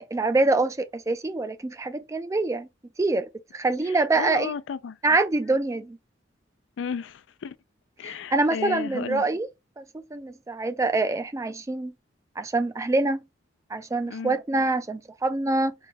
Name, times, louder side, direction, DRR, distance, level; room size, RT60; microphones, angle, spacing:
voice 1, 0.0-2.7 3.0-4.5 5.0-6.0 8.0-9.5 9.8-11.9 12.4-13.2 13.7-15.7, right 2 dB, 15° right, 0.3 m, -25 dB
voice 2, 3.8-5.0 6.8-7.6 8.0-9.2 14.1-14.4, left 6 dB, 75° left, 0.4 m, -34 dB
4.0 x 2.2 x 3.4 m
head